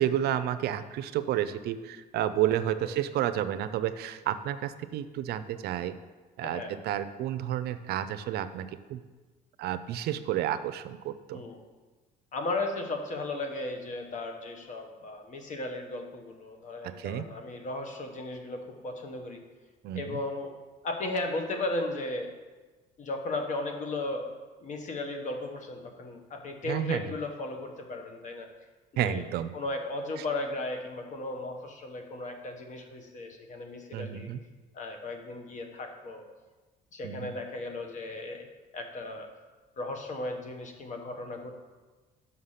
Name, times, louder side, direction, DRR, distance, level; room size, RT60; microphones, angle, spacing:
voice 1, 0.0-6.0 6.4-9.0 9.6-11.4 17.0-17.3 19.8-20.2 26.7-27.0 29.0-29.5 33.9-34.4 37.0-37.3, right 11 dB, 70° right, 12 dB, 0.5 m, -31 dB
voice 2, 6.4-6.7 11.3-11.6 12.3-19.4 19.9-20.5 20.8-22.3 23.0-24.3 24.6-28.5 29.0-29.2 29.5-34.3 34.7-36.3 36.9-38.5 38.7-39.3 39.8-41.5, left 2 dB, 45° left, 5 dB, 1.2 m, -35 dB
6.5 x 5.7 x 5.7 m, 1.3 s
cardioid pair, 110°, 17 cm